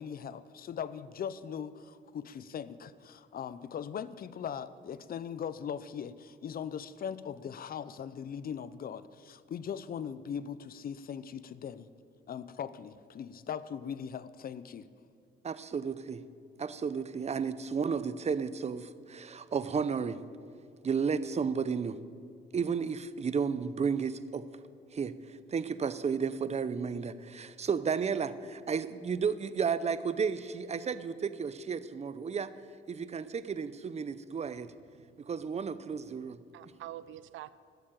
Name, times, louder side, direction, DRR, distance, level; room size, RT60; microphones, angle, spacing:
voice 1, 0.0-11.9 12.3-14.9, left 8 dB, 50° left, 16 dB, 0.6 m, -40 dB
voice 2, 15.4-16.2 16.6-20.2 20.8-22.0 22.5-24.4 24.9-32.5 32.9-34.7 35.3-36.4, right 6 dB, 35° right, 14 dB, 0.7 m, -33 dB
voice 3, 34.9-35.3 36.2-37.5, right 13 dB, 75° right, 16 dB, 0.5 m, -47 dB
13.0 x 7.4 x 9.0 m, 2.3 s
cardioid pair, 90°, 20 cm